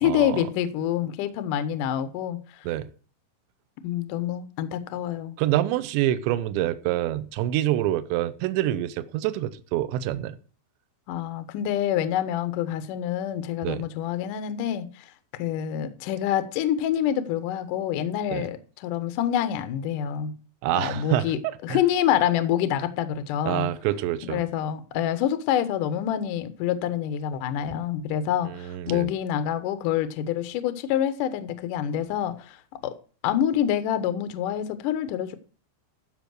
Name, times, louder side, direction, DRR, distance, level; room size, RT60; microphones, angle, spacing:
voice 1, 0.0-2.4 3.8-5.4 11.1-15.1 15.3-20.3 20.7-23.7 24.2-32.6 32.8-33.0 33.2-35.4, left 10 dB, 85° left, 1.8 m, -27 dB
voice 2, 5.4-10.4 13.6-13.8 18.3-18.4 20.6-21.3 21.7-21.8 23.5-24.4 28.5-29.1, right 13 dB, 80° right, 3.0 m, -26 dB
15.0 x 5.4 x 6.4 m
omnidirectional pair, 5.3 m